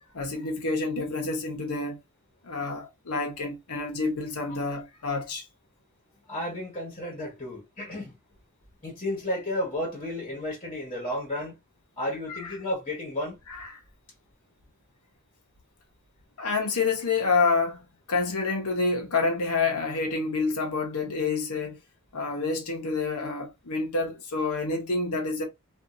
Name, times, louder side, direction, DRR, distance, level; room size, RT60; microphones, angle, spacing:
voice 1, 0.1-2.0 2.4-5.5 12.3-12.5 13.5-13.7 16.4-17.8 18.1-21.8 22.1-25.4, left 4 dB, 80° left, 0.9 m, -28 dB
voice 2, 6.3-8.2 8.8-11.6 12.0-13.4, left 1 dB, 25° left, 1.2 m, -32 dB
2.7 x 2.5 x 2.5 m
head